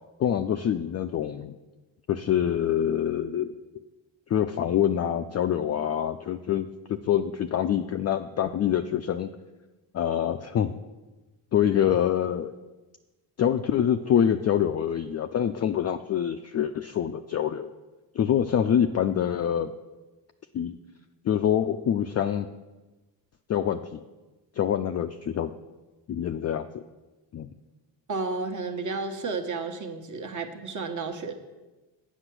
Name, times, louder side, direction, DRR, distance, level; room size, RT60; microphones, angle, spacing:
voice 1, 0.2-1.5 2.1-3.5 4.3-9.3 9.9-10.7 11.5-12.5 13.4-17.7 18.1-19.7 20.5-20.7 21.2-22.5 23.5-24.0 24.6-25.5 26.1-26.8 27.3-27.5, left 9 dB, 35° left, 7 dB, 0.4 m, -25 dB
voice 2, 28.1-31.3, right 4 dB, 40° right, 4 dB, 1.2 m, -32 dB
8.1 x 5.7 x 6.1 m, 1.2 s
supercardioid pair, 65°, 47 cm